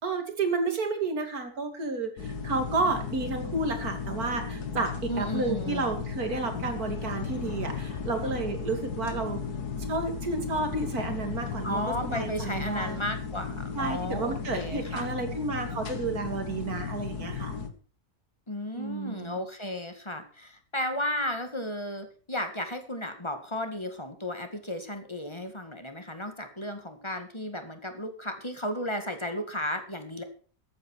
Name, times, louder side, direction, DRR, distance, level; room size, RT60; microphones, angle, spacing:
voice 1, 0.0-4.9 5.2-9.4 9.9-13.0 13.7-17.6 18.8-19.4, right 3 dB, 70° right, 6 dB, 3.0 m, -31 dB
sound 1, 2.2-17.7, left 5 dB, 80° left, 2.0 m, -35 dB
voice 2, 5.1-6.0 11.6-15.1 18.5-30.2, left 1 dB, 20° left, 7 dB, 2.0 m, -34 dB
13.5 x 9.2 x 6.3 m, 0.40 s
omnidirectional pair, 1.6 m